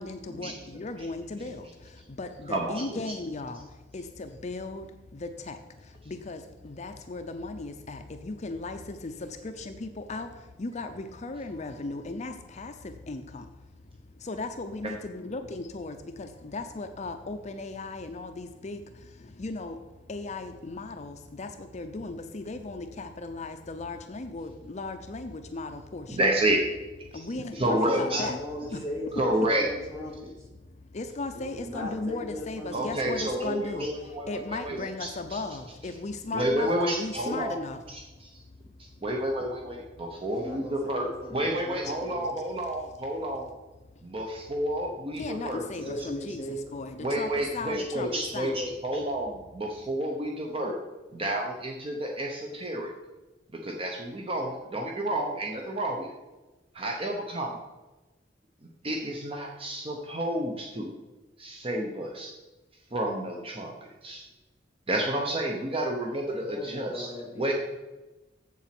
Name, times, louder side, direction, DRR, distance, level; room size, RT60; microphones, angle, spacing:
voice 1, 0.0-26.2 27.1-28.5 28.7-28.8 30.7-37.8 40.5-40.6 41.8-42.0 45.2-48.6, left 3 dB, 40° left, 7 dB, 0.6 m, -37 dB
voice 2, 2.5-2.8 14.8-14.9 26.1-26.6 27.1-27.3 27.5-28.2 29.1-29.7 32.7-35.4 36.3-37.5 37.9-38.3 38.8-43.5 44.0-45.6 46.0-46.1 47.0-50.8 51.1-52.9 53.5-56.1 56.7-57.6 58.8-60.9 61.4-62.3 62.9-63.7 64.0-64.2 64.9-67.1 67.3-67.5, right 1 dB, 30° right, 1 dB, 0.9 m, -30 dB
voice 3, 27.6-30.5 31.3-33.1 40.3-42.3 45.5-46.8 66.3-67.5, left 1 dB, 15° right, -3 dB, 2.7 m, -38 dB
7.7 x 7.3 x 5.9 m, 1.1 s
head